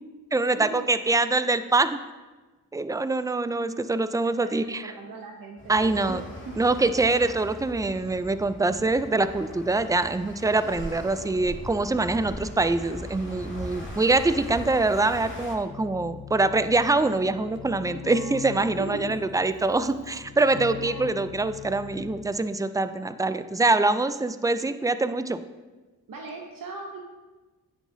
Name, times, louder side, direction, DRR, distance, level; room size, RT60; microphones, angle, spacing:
voice 1, 0.3-2.0 2.7-4.8 5.7-6.2 6.6-25.4, right 3 dB, 10° right, 12 dB, 0.3 m, -24 dB
voice 2, 4.2-6.2 18.8-19.3 26.1-27.0, right 3 dB, 60° right, 1 dB, 0.9 m, -39 dB
sound 1, 5.6-15.6, equal, 30° left, 2.1 m, -40 dB
Keyboard (musical), 15.7-22.5, left 7 dB, 80° left, 0.9 m, -41 dB
9.2 x 6.2 x 2.7 m, 1.2 s
cardioid pair, 45°, 38 cm